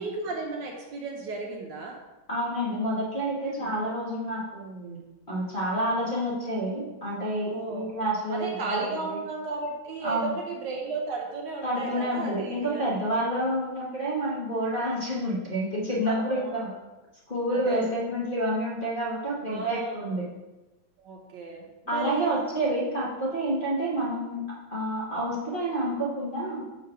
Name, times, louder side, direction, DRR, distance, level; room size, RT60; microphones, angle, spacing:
voice 1, 0.0-2.0 3.5-3.7 7.4-7.9 8.3-12.8 13.2-13.3 16.1-16.8 17.5-17.9 19.5-20.1 21.0-22.3 25.3-25.4, right 3 dB, 65° right, 1 dB, 1.2 m, -35 dB
voice 2, 2.3-5.0 5.3-9.2 10.0-10.3 11.6-16.7 17.3-20.2 21.9-24.4 24.7-26.6, right 1 dB, 30° left, -6 dB, 1.0 m, -29 dB
5.3 x 3.9 x 5.6 m, 1.1 s
omnidirectional pair, 2.3 m